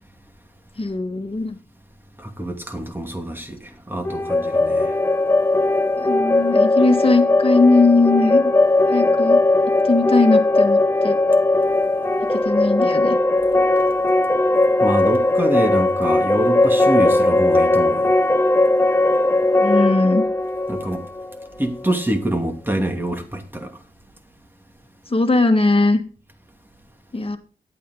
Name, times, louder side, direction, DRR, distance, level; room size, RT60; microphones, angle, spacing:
voice 1, 0.8-1.6 6.0-8.5 8.9-9.4 9.8-11.2 12.3-13.2 19.6-20.2 25.1-26.0 27.1-27.4, left 3 dB, 35° left, 2.0 m, -19 dB
voice 2, 2.2-3.6 3.9-4.9 14.8-18.2 20.7-21.0 21.6-23.7, right 1 dB, 10° right, 2.5 m, -25 dB
sound 1, 4.0-21.8, left 2 dB, 15° left, 0.6 m, -18 dB
10.5 x 8.4 x 3.9 m
cardioid pair, 50°, 17 cm